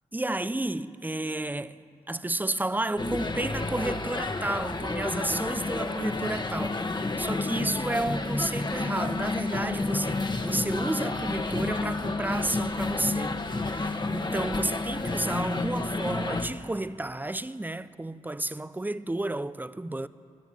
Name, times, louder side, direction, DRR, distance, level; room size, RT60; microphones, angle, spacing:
voice 1, 0.1-1.8 2.1-13.4 13.6-20.1, right 2 dB, 15° right, 0.8 m, -31 dB
sound 1, 3.0-16.5, left 3 dB, 35° left, 1.6 m, -30 dB
22.0 x 13.5 x 9.1 m
cardioid pair, 50°, 14 cm